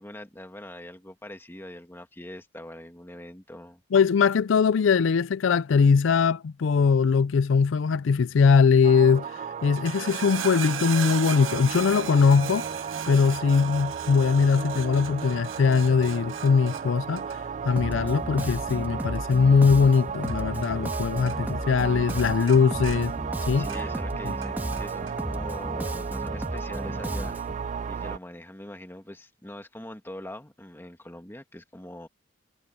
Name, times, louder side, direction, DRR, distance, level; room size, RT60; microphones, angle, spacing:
voice 1, 0.0-3.8 23.5-27.4 27.9-32.1, left 1 dB, 10° left, 1.6 m, -42 dB
voice 2, 3.9-9.3 9.6-12.7 13.1-17.4 17.6-23.1 23.5-23.7 24.3-24.4, left 5 dB, 75° left, 0.4 m, -21 dB
sound 1, 8.8-28.2, right 6 dB, 40° right, 0.3 m, -34 dB
sound 2, 9.6-21.0 21.3-21.8 22.1-24.1 24.4-25.2 25.8-25.9, right 9 dB, 85° right, 0.8 m, -39 dB
Bass guitar, 17.8-27.6, equal, 10° right, 1.9 m, -34 dB
head